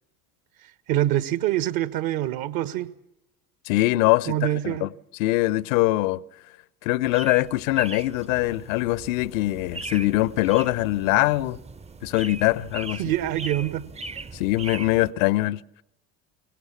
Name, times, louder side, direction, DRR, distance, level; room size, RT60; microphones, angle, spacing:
voice 1, 0.9-2.9 4.3-4.9 13.0-13.9, right 13 dB, 50° right, 1.3 m, -25 dB
voice 2, 3.7-4.9 5.2-6.2 6.8-11.6 12.0-13.0 14.3-15.6, left 18 dB, 60° left, 0.7 m, -23 dB
sound 1, 7.0-15.1, right 3 dB, 15° right, 0.7 m, -40 dB
23.5 x 18.5 x 7.2 m
figure-of-eight pair, 65°, 47 cm